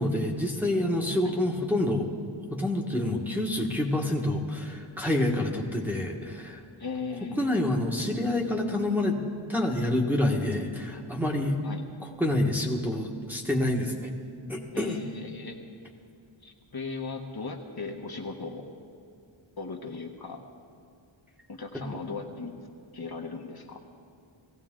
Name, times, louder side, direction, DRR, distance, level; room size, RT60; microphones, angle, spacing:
voice 1, 0.0-2.1 2.5-6.6 7.4-9.2 9.5-11.6 12.2-14.1 14.5-15.0 21.7-21.8, left 1 dB, 5° right, -2 dB, 1.5 m, -27 dB
voice 2, 6.8-7.5 11.6-11.8 14.7-15.6 16.4-18.7 19.6-20.4 21.5-22.5 22.9-23.8, left 4 dB, 45° left, 1 dB, 1.2 m, -37 dB
19.0 x 16.0 x 3.8 m, 2.3 s
wide cardioid pair, 85°, 50 cm